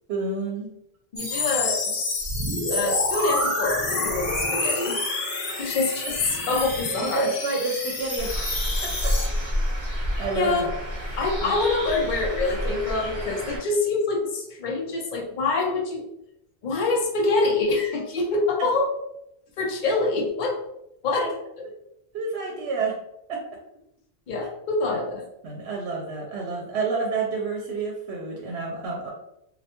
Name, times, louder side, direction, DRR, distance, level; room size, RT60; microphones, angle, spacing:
voice 1, 0.1-0.7 7.0-8.9 10.2-10.7 11.4-11.5 21.2-21.3 22.1-22.9 23.3-23.4 24.9-25.0 25.4-29.1, right 4 dB, 80° right, -1 dB, 0.8 m, -29 dB
voice 2, 1.1-2.0 2.7-5.0 5.5-7.3 10.4-10.7 11.2-16.0 16.6-18.9 19.6-20.6 21.0-21.3 24.3-25.2, left 3 dB, 55° left, 0 dB, 0.7 m, -25 dB
sound 1, 1.2-9.3, left 2 dB, 80° left, 1.0 m, -28 dB
Bird, 8.2-13.6, equal, 50° right, 1.1 m, -29 dB
2.5 x 2.1 x 2.8 m, 0.78 s
omnidirectional pair, 1.1 m